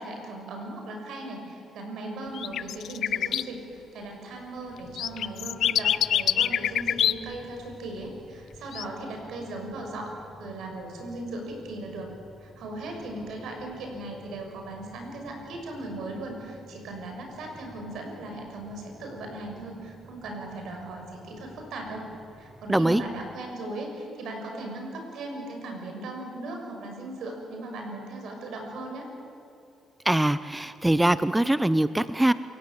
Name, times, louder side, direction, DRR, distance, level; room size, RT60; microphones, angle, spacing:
voice 1, 0.0-12.1 12.4-22.1 22.4-29.1, right 2 dB, 75° right, 2 dB, 6.6 m, -38 dB
sound 1, 2.3-3.4 5.0-7.3 8.7-8.8, left 10 dB, 70° left, 0.5 m, -24 dB
sound 2, 4.6-23.3, equal, 15° left, 7.3 m, -51 dB
voice 2, 22.7-23.0 30.1-32.3, right 1 dB, 10° right, 14 dB, 0.6 m, -22 dB
28.5 x 17.0 x 8.7 m, 2.7 s
cardioid pair, 90°, 0 cm